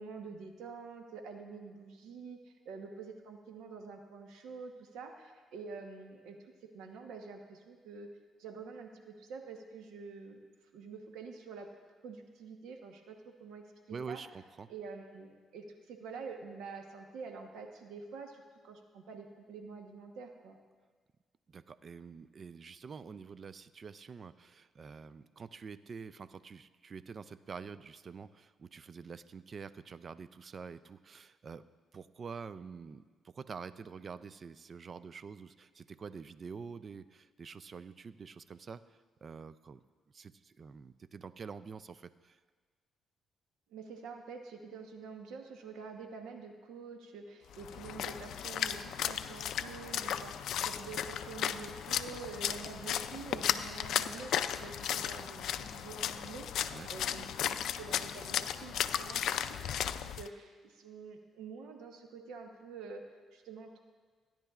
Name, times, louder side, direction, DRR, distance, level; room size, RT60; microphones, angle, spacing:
voice 1, 0.0-6.4 6.7-8.1 8.4-10.4 10.7-11.7 12.0-14.2 14.7-20.6 43.7-63.8, right 5 dB, 85° right, 4 dB, 1.0 m, -47 dB
voice 2, 13.9-14.7 21.5-31.6 31.9-42.4 56.7-56.9, right 5 dB, 45° right, 14 dB, 0.4 m, -47 dB
Splash splatter, 47.5-60.3, left 10 dB, 75° left, 0.3 m, -35 dB
16.5 x 10.0 x 2.4 m, 1.5 s
cardioid pair, 90°, 0 cm